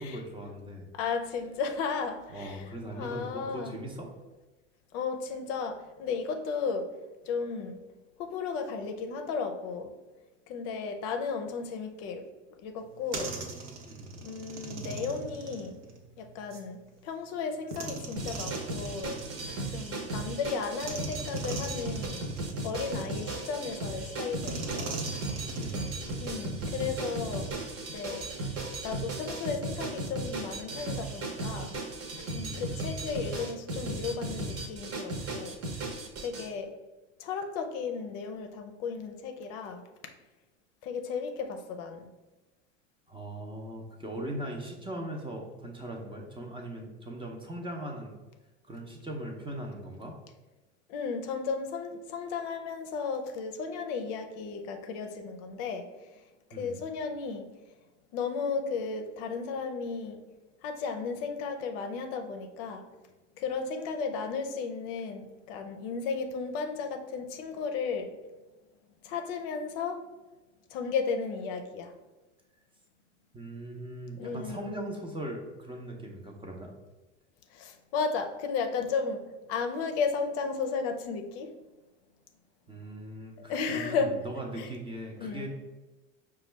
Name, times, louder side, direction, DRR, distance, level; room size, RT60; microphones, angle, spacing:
voice 1, 0.0-0.9 2.3-4.1 13.8-14.2 25.6-26.0 32.4-32.6 43.1-48.1 48.7-50.2 56.5-56.8 73.3-76.7 82.7-85.5, right 1 dB, 15° right, 1 dB, 0.6 m, -39 dB
voice 2, 0.9-2.6 2.9-3.8 4.9-6.9 7.2-7.8 8.2-9.9 10.5-12.2 12.6-13.3 14.2-15.8 16.2-19.2 19.7-22.2 22.6-25.2 26.2-27.5 27.9-28.3 28.8-31.7 32.3-35.6 36.2-36.7 37.2-39.8 40.8-42.1 50.9-55.9 56.5-57.5 58.1-60.2 60.6-62.8 63.4-68.1 69.0-70.0 70.7-71.9 74.2-74.7 77.5-81.5 83.4-84.1 84.6-84.7 85.2-85.5, left 5 dB, 55° left, 5 dB, 0.6 m, -34 dB
sound 1, 12.8-16.7 17.7-20.3 20.8-23.7 24.4-26.8, right 4 dB, 75° right, 0.8 m, -41 dB
sound 2, 18.2-36.5, right 2 dB, 40° right, 0.9 m, -36 dB
4.9 x 2.3 x 3.2 m, 1.1 s
hypercardioid pair, 95°, 36 cm